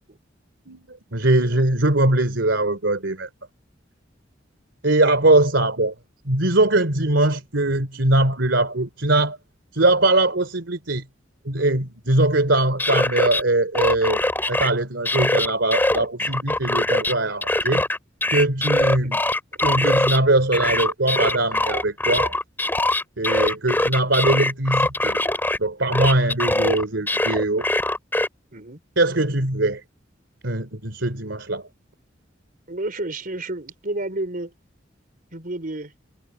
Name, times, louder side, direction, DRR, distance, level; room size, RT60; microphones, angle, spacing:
voice 1, 0.7-3.3 4.8-5.9 6.2-9.4 9.7-11.0 11.4-14.2 14.5-17.8 18.3-19.2 19.6-22.3 23.2-25.2 25.6-27.6 29.0-29.8 30.4-31.6, right 2 dB, 75° right, 3.1 m, -21 dB
sound 1, 12.6-13.4 13.7-14.7 15.1-17.1 17.4-20.2 20.5-25.6 25.9-28.3, left 1 dB, 10° left, 3.4 m, -22 dB
voice 2, 32.7-34.5 35.3-35.9, right 2 dB, 50° right, 4.3 m, -31 dB
head